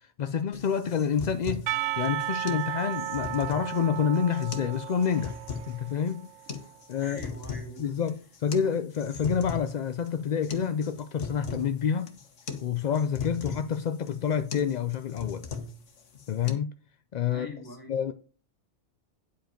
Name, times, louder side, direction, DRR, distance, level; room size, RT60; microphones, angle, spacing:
voice 1, 0.0-5.3 5.7-6.3 6.9-7.2 7.8-12.1 12.6-15.4 16.3-16.7 17.1-17.5 17.9-18.1, left 7 dB, 55° left, 0.5 m, -28 dB
sound 1, 0.5-16.5, left 5 dB, 90° left, 1.6 m, -39 dB
Percussion / Church bell, 1.7-6.7, right 14 dB, 85° right, 0.9 m, -34 dB
voice 2, 7.0-7.9 8.6-8.7 17.3-18.0, left 2 dB, 15° left, 2.0 m, -43 dB
10.0 x 5.1 x 5.1 m
omnidirectional pair, 1.2 m